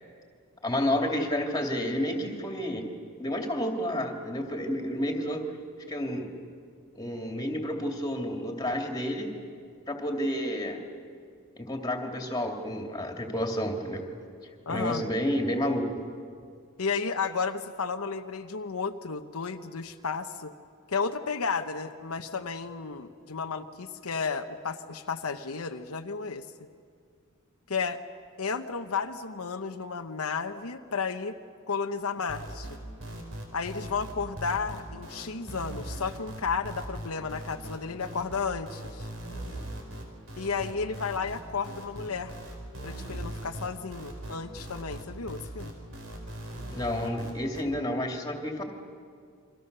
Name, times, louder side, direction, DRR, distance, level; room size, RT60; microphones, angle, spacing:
voice 1, 0.6-2.9 3.2-5.5 5.9-6.3 6.9-9.4 9.9-10.8 11.6-14.1 14.7-15.9 46.7-48.6, left 1 dB, 20° left, 3 dB, 2.6 m, -30 dB
voice 2, 14.7-15.0 16.8-20.5 20.9-26.4 27.7-28.0 28.4-31.4 31.7-32.8 33.5-39.1 40.4-42.4 42.8-45.7, left 5 dB, 90° left, 6 dB, 1.0 m, -33 dB
sound 1, 32.3-47.6, right 1 dB, 65° right, 4.6 m, -39 dB
29.0 x 24.0 x 6.8 m, 2.2 s
head